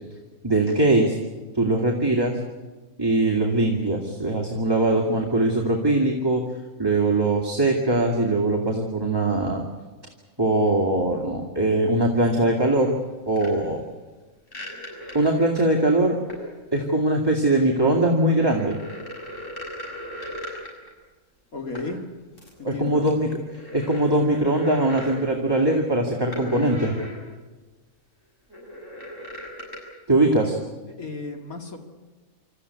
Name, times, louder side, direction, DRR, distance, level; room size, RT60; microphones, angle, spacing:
voice 1, 0.4-1.2 1.5-2.4 3.0-6.4 6.8-9.6 10.4-13.0 13.3-13.8 15.1-16.2 16.7-18.8 22.6-23.3 23.7-27.0 30.1-30.6, right 2 dB, 15° right, -1 dB, 2.4 m, -21 dB
sound 1, 13.4-13.5 14.5-15.8 16.3-16.5 18.0-20.9 21.8-21.9 22.3-22.5 23.1-25.2 26.3-27.2 27.6-27.7 28.5-29.8, equal, 60° left, 6.9 m, -37 dB
voice 2, 21.5-22.0 22.6-23.1 30.9-31.8, left 3 dB, 80° left, 4 dB, 2.7 m, -34 dB
27.5 x 14.0 x 9.7 m, 1.3 s
omnidirectional pair, 1.5 m